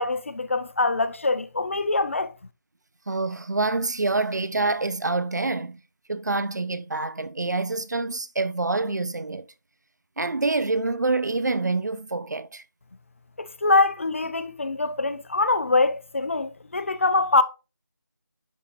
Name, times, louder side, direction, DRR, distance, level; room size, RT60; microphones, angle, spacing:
voice 1, 0.0-2.3 13.4-17.4, left 3 dB, 40° left, 0.5 m, -24 dB
voice 2, 3.1-5.8 6.1-9.5 10.2-12.6, right 3 dB, 65° right, 0.7 m, -26 dB
10.5 x 3.7 x 3.0 m
figure-of-eight pair, 170°, 10 cm